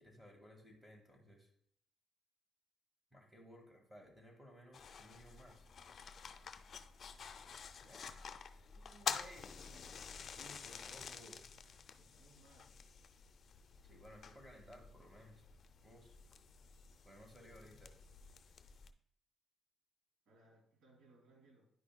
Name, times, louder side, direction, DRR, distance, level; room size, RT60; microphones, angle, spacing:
voice 1, 0.0-1.5 3.1-5.7 7.8-8.3 9.1-9.4 10.4-11.4 13.8-15.4 15.8-16.2 17.0-17.9, equal, 5° right, 2 dB, 1.8 m, -58 dB
sound 1, 4.7-18.9, left 6 dB, 55° left, 0.4 m, -49 dB
voice 2, 8.6-10.0 12.0-12.7 20.3-21.7, right 3 dB, 75° right, 0 dB, 2.8 m, -66 dB
10.0 x 5.0 x 2.2 m, 0.67 s
cardioid pair, 90°, 0 cm